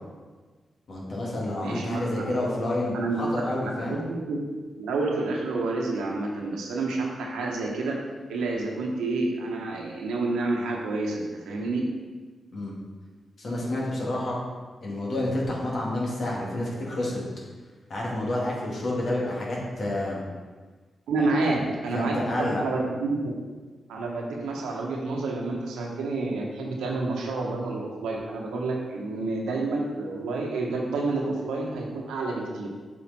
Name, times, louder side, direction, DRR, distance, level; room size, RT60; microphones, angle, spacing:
voice 1, 0.9-4.0 12.5-12.7 13.4-14.4 14.8-17.2 17.9-20.2 21.2-21.6 21.9-22.6, left 1 dB, 65° left, -4 dB, 2.3 m, -29 dB
voice 2, 1.6-2.3 2.9-3.2 3.8-4.4 4.8-8.0 8.3-11.8 21.1-23.2 23.9-32.7, right 3 dB, 90° right, 0 dB, 1.1 m, -29 dB
7.7 x 4.9 x 4.3 m, 1.4 s
supercardioid pair, 45°, 0 cm